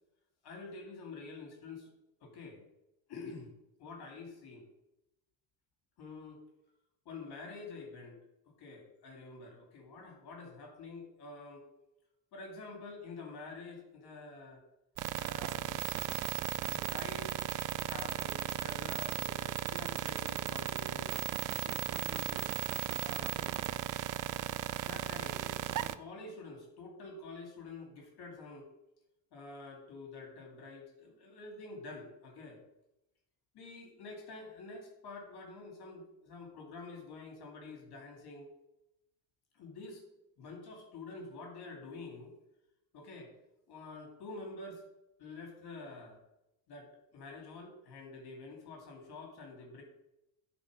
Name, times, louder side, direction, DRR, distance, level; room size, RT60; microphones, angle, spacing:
voice 1, 0.4-1.9 2.2-2.7 3.1-3.5 3.8-4.7 6.0-6.4 7.1-8.2 8.4-11.7 12.3-14.6 15.2-15.8 16.6-17.4 17.8-21.3 21.5-22.5 23.0-23.4 24.8-28.7 29.3-32.6 33.5-38.5 39.5-40.0 40.4-42.3 42.9-43.3 43.7-44.9 45.2-46.2 46.7-49.8, left 3 dB, 55° left, 1 dB, 2.4 m, -48 dB
sound 1, 15.0-25.9, right 13 dB, 45° right, 0.5 m, -36 dB
10.5 x 4.2 x 5.1 m, 0.91 s
cardioid pair, 105°, 46 cm